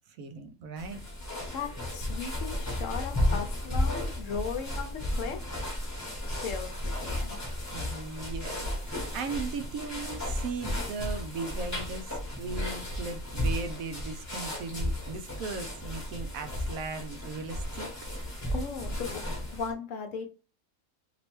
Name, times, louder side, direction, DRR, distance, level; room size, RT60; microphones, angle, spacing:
voice 1, 0.1-1.1 7.7-17.9, right 4 dB, 75° right, 1.0 m, -38 dB
sound 1, 0.8-19.7, left 1 dB, 15° left, 0.9 m, -34 dB
voice 2, 1.5-5.6 6.3-7.4 18.5-19.2 19.5-20.3, left 5 dB, 65° left, 1.0 m, -37 dB
3.1 x 2.9 x 3.0 m
omnidirectional pair, 1.5 m